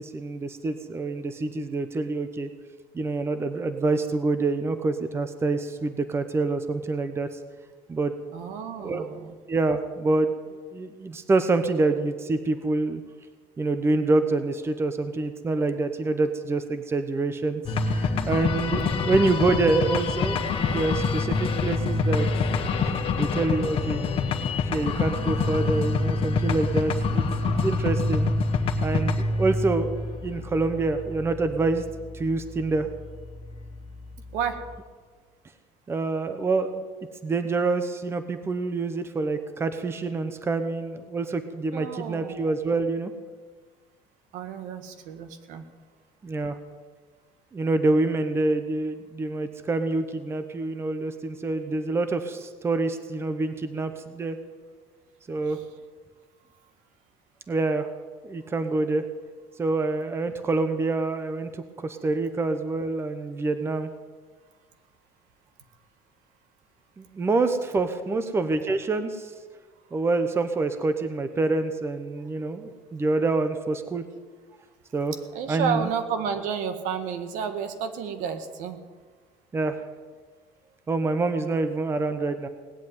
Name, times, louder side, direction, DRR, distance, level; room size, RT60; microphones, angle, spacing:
voice 1, 0.0-2.5 2.9-7.4 7.9-8.1 8.8-9.1 9.5-10.3 10.7-13.0 13.6-17.6 17.9-22.3 23.2-24.0 24.7-28.3 28.8-29.9 30.2-31.8 32.1-32.9 35.9-36.8 37.2-43.1 46.2-46.6 47.5-54.4 55.3-55.6 57.5-57.9 58.2-59.0 59.6-63.9 67.0-69.3 69.9-74.0 74.9-75.1 75.5-75.9 79.5-79.8 80.9-82.5, right 3 dB, 20° right, 9 dB, 1.0 m, -26 dB
voice 2, 8.3-9.4 18.7-19.2 34.3-34.6 41.7-42.4 44.3-45.6 68.1-68.2 75.3-78.8, right 7 dB, 75° right, 7 dB, 1.8 m, -31 dB
sound 1, 17.7-34.8, left 4 dB, 45° left, 1.5 m, -27 dB
19.0 x 8.3 x 9.2 m, 1.5 s
cardioid pair, 140°, 13 cm